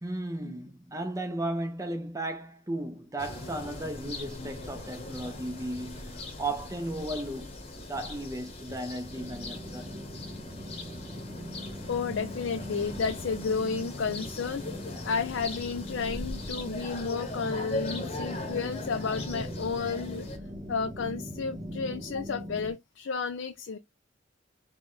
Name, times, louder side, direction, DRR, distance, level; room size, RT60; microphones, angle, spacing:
voice 1, 0.0-7.5 7.9-9.9, right 1 dB, 15° right, 0.7 m, -35 dB
sound 1, 3.2-20.4, left 2 dB, 30° left, 1.1 m, -40 dB
sound 2, 9.1-22.7, equal, 50° right, 1.9 m, -41 dB
voice 2, 11.9-14.7 15.0-20.3 20.7-23.8, left 5 dB, 70° left, 0.5 m, -32 dB
4.7 x 2.3 x 3.9 m
head